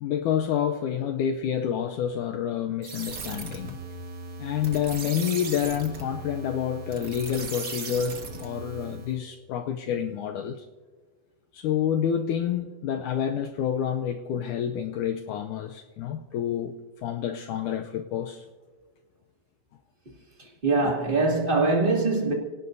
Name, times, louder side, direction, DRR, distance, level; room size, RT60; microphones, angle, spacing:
voice 1, 0.0-3.8 4.4-10.6 11.5-16.7 17.0-18.4 20.8-20.9, left 9 dB, 85° left, 1.8 m, -28 dB
sound 1, 2.8-9.2, right 3 dB, 65° right, 0.9 m, -38 dB
voice 2, 20.4-22.3, right 3 dB, 20° right, 1.8 m, -23 dB
27.5 x 18.0 x 2.7 m
omnidirectional pair, 4.3 m